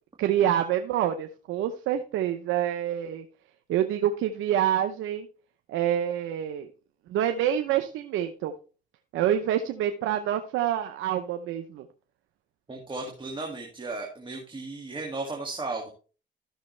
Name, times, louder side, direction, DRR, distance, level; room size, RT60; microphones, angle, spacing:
voice 1, 0.2-3.2 3.7-5.3 5.7-6.7 7.1-8.5 9.1-11.8, right 10 dB, 90° right, 7 dB, 0.8 m, -27 dB
voice 2, 12.7-15.9, right 3 dB, 25° right, 1 dB, 2.0 m, -35 dB
13.5 x 6.3 x 3.2 m, 0.36 s
cardioid pair, 90°, 20 cm